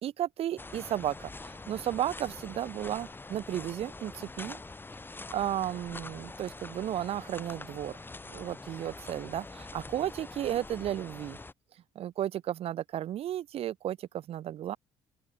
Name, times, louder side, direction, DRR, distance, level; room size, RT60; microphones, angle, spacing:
voice 1, 0.0-4.6 5.3-7.9 8.3-11.4 12.0-14.8, right 12 dB, 55° right, 0.5 m, -34 dB
sound 1, 0.6-11.5, left 3 dB, 15° left, 1.1 m, -44 dB
open air
supercardioid pair, 65°, 12 cm